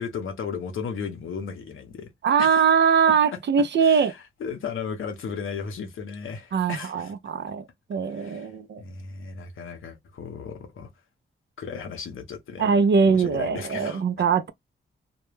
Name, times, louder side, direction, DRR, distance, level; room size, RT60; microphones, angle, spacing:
voice 1, 0.0-2.1 2.4-2.6 3.3-3.4 3.8-7.1 8.1-8.5 8.8-10.9 11.6-12.7 13.1-14.0, left 6 dB, 80° left, 0.7 m, -35 dB
voice 2, 2.2-4.1 6.5-7.6 7.9-8.8 12.6-14.5, right 6 dB, 60° right, 0.4 m, -21 dB
2.2 x 2.1 x 3.1 m
cardioid pair, 85°, 21 cm